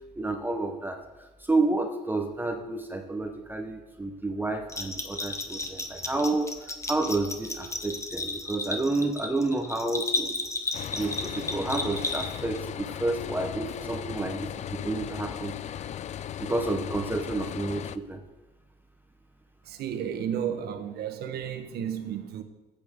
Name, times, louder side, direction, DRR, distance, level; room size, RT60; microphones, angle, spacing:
voice 1, 0.2-10.5 10.9-15.5 15.8-15.9 16.4-18.2, right 2 dB, 10° right, 0.9 m, -30 dB
Bell, 4.7-12.6, left 2 dB, 15° left, 1.1 m, -33 dB
sound 1, 10.7-18.0, left 10 dB, 45° left, 0.4 m, -37 dB
voice 2, 19.7-22.4, right 9 dB, 70° right, 1.2 m, -32 dB
14.0 x 8.6 x 3.7 m
cardioid pair, 110°, 17 cm